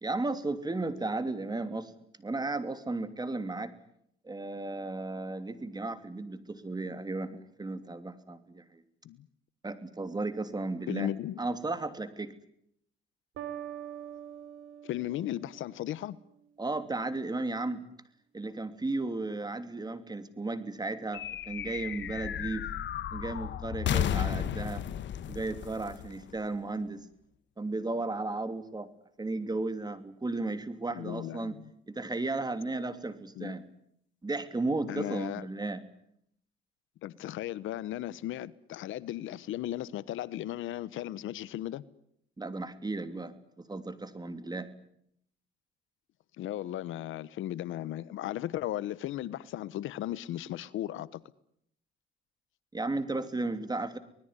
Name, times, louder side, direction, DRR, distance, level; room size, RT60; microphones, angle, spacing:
voice 1, 0.0-1.9 2.2-3.7 4.2-8.8 9.6-12.3 16.6-17.8 18.3-22.6 23.1-24.8 25.3-27.1 27.6-28.9 29.2-31.6 31.9-33.6 34.2-35.8 42.4-44.7 52.7-54.0, right 2 dB, 20° right, 2.9 m, -34 dB
voice 2, 10.9-11.4 14.8-16.2 30.9-31.7 33.4-33.5 34.9-35.5 37.0-41.8 46.4-51.2, left 13 dB, 85° left, 1.0 m, -36 dB
sound 1, 13.4-16.2, right 10 dB, 80° right, 3.5 m, -44 dB
sound 2, 21.1-26.8, left 10 dB, 65° left, 1.4 m, -34 dB
25.5 x 20.0 x 9.9 m
cardioid pair, 90°, 20 cm